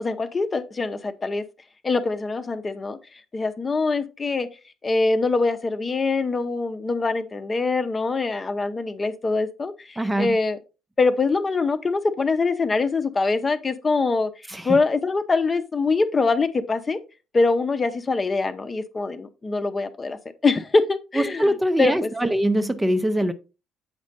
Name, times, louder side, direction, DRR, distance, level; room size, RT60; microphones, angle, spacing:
voice 1, 0.0-1.4 1.8-4.5 4.8-10.6 11.0-17.0 17.3-22.3, left 3 dB, 30° left, 0.8 m, -24 dB
voice 2, 10.0-10.4 14.5-14.6 21.2-23.3, right 1 dB, 10° right, 0.6 m, -22 dB
8.1 x 5.1 x 4.0 m
figure-of-eight pair, 50°, 0 cm